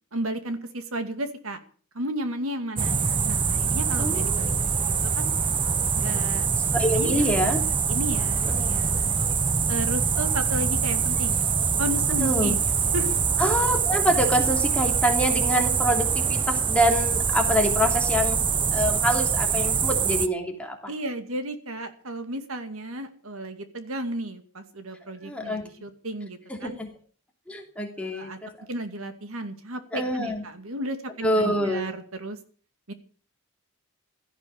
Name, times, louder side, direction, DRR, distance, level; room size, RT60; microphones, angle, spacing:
voice 1, 0.1-1.6 1.9-4.7 5.2-5.3 5.9-6.5 6.9-7.3 7.9-9.1 9.7-11.4 11.8-12.6 12.9-13.1 20.9-26.8 28.0-28.4 28.7-32.4 32.9-33.0, right 1 dB, 75° right, 8 dB, 2.4 m, -33 dB
sound 1, 2.8-20.3, right 6 dB, 20° right, 0.7 m, -24 dB
voice 2, 4.0-4.5 6.5-7.6 8.4-8.7 12.2-12.6 13.4-18.4 18.7-20.9 25.2-25.6 26.5-26.9 27.5-28.5 29.9-30.4 31.2-31.8, equal, 5° left, 1 dB, 3.0 m, -26 dB
16.5 x 12.5 x 6.6 m, 0.43 s
head